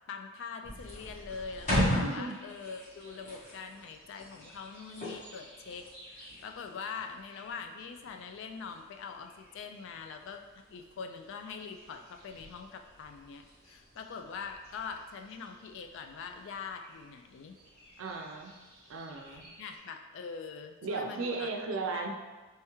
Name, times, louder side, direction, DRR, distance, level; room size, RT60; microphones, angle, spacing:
voice 1, 0.1-5.8 6.1-17.6 19.3-21.5 21.8-22.2, left 5 dB, 60° left, 6 dB, 0.3 m, -43 dB
sound 1, 0.6-19.8, equal, 35° left, 1.1 m, -40 dB
voice 2, 2.0-2.4 18.0-18.5 18.9-19.5 20.8-22.2, right 3 dB, 65° right, 2 dB, 0.4 m, -36 dB
3.4 x 3.2 x 3.0 m, 1.3 s
head